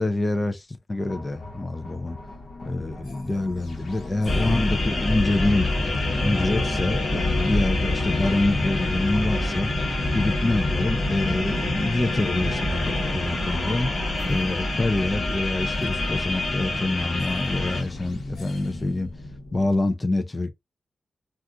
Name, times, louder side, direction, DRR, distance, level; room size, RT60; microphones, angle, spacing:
voice 1, 0.0-2.2 2.7-5.7 6.2-9.7 10.1-13.9 14.3-19.1 19.5-20.5, left 2 dB, 20° left, 0.4 m, -26 dB
sound 1, 0.9-19.8, left 2 dB, 70° left, 0.9 m, -37 dB
sound 2, 4.3-17.8, left 2 dB, 40° left, 1.0 m, -26 dB
2.4 x 2.3 x 3.7 m
wide cardioid pair, 150°, 0 cm